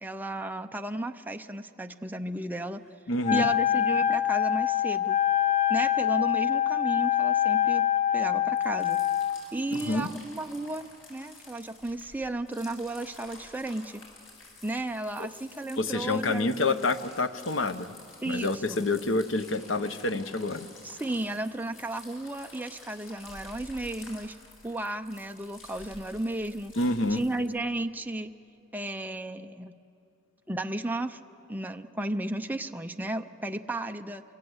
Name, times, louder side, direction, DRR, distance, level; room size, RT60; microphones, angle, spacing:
voice 1, 0.0-2.8 3.3-5.2 5.7-7.8 8.1-9.0 9.5-14.0 14.6-16.7 18.2-18.9 20.8-24.3 24.6-26.7 27.1-28.3 28.7-29.7 30.5-31.2 31.5-34.2, right 1 dB, 10° right, 6 dB, 0.6 m, -34 dB
voice 2, 3.1-3.5 9.7-10.1 15.2-15.3 15.8-17.9 18.2-20.7 26.8-27.2, left 2 dB, 65° left, 10 dB, 1.0 m, -28 dB
Wind instrument woodwind instrument, 3.2-9.4, left 11 dB, 35° left, 0.8 m, -25 dB
sound 1, 8.5-27.5, left 2 dB, 85° left, 7.8 m, -50 dB
27.0 x 25.5 x 8.1 m, 2.7 s
head